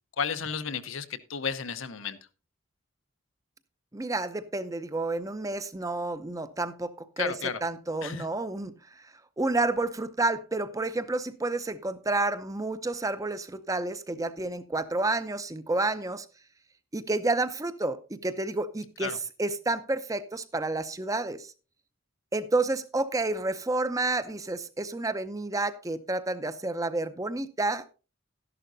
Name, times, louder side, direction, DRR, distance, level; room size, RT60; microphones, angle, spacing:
voice 1, 0.2-2.2 7.2-7.6 8.0-8.3 19.0-19.2, left 6 dB, 75° left, 0.8 m, -32 dB
voice 2, 3.9-7.3 7.6-9.1 9.4-16.3 16.9-21.5 22.3-27.8, right 2 dB, 15° right, 0.6 m, -30 dB
12.5 x 11.0 x 2.7 m
head